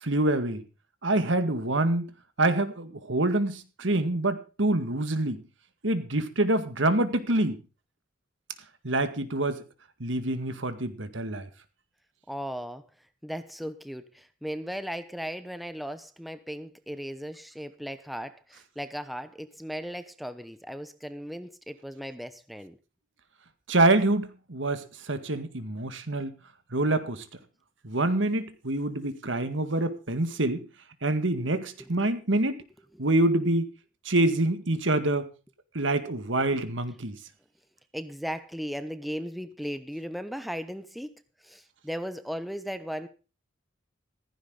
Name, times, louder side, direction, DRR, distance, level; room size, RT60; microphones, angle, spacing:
voice 1, 0.0-0.6 1.0-2.1 2.4-5.4 5.8-7.6 8.8-9.6 10.0-11.5 23.7-26.3 26.7-27.3 27.8-30.7 31.0-32.6 33.0-33.7 34.1-35.3 35.7-37.2, right 2 dB, 70° right, 10 dB, 1.9 m, -26 dB
voice 2, 12.3-12.8 13.2-22.8 31.8-32.0 37.9-43.1, equal, ahead, 10 dB, 0.9 m, -37 dB
15.5 x 15.0 x 3.9 m, 0.34 s
head